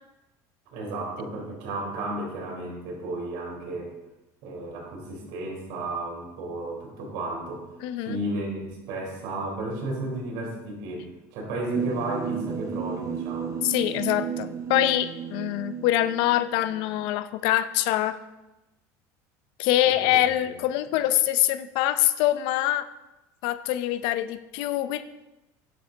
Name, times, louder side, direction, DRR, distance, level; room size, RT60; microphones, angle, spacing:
voice 1, 0.7-3.9 4.4-7.7 8.0-13.6 19.8-20.5, right 2 dB, 70° right, -1 dB, 4.0 m, -33 dB
voice 2, 7.8-8.2 13.6-18.2 19.6-22.9 23.4-25.0, left 14 dB, 70° left, 13 dB, 0.6 m, -24 dB
sound 1, 11.7-17.1, right 7 dB, 40° right, 0.7 m, -34 dB
10.5 x 7.5 x 4.0 m, 1.0 s
supercardioid pair, 125°, 8 cm